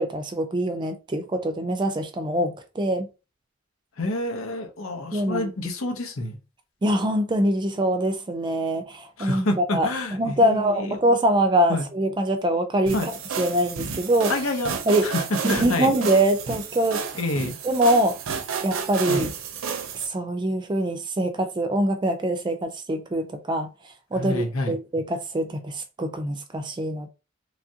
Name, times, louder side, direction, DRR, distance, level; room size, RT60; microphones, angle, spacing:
voice 1, 0.0-3.1 5.1-5.5 6.8-13.1 13.4-14.3 14.9-15.1 15.4-17.0 17.6-18.2 18.6-19.3 20.0-23.7 24.1-27.1, right 1 dB, 20° right, 0.4 m, -24 dB
voice 2, 4.0-6.4 9.2-11.0 11.7-11.9 12.9-13.1 14.3-14.7 15.0-15.9 17.1-17.6 19.1-19.2 24.1-24.8, left 2 dB, 90° left, 0.8 m, -28 dB
sound 1, 12.9-20.1, right 6 dB, 75° right, 0.5 m, -31 dB
3.1 x 2.4 x 2.7 m
head